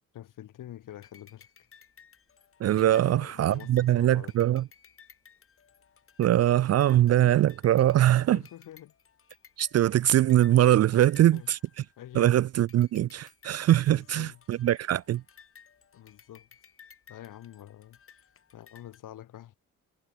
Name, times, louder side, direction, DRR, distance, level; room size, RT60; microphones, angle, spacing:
voice 1, 0.1-1.7 2.7-4.5 8.3-8.9 10.9-11.5 12.0-12.3 13.9-14.4 15.9-16.5 17.1-18.0 18.5-19.5, left 12 dB, 85° left, 6.7 m, -46 dB
sound 1, 1.0-12.2 12.7-19.0, left 7 dB, 45° left, 6.7 m, -57 dB
voice 2, 2.6-4.6 6.2-8.4 9.6-11.6 12.2-15.2, right 12 dB, 55° right, 0.5 m, -22 dB
cardioid pair, 140°, 31 cm